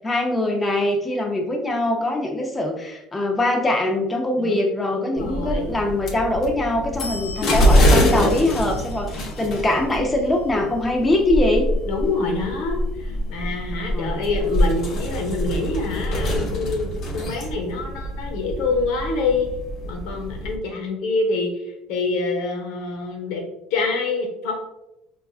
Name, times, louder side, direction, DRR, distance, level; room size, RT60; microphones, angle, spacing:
voice 1, 0.0-11.7 13.7-14.2, left 1 dB, 15° left, 1 dB, 0.5 m, -23 dB
voice 2, 4.4-5.8 11.8-19.5 19.8-23.4 23.7-24.5, left 3 dB, 75° left, 1 dB, 0.9 m, -26 dB
sound 1, 5.2-20.6, equal, 50° left, 0.7 m, -24 dB
4.4 x 2.4 x 2.4 m, 0.88 s
cardioid pair, 135°, 0 cm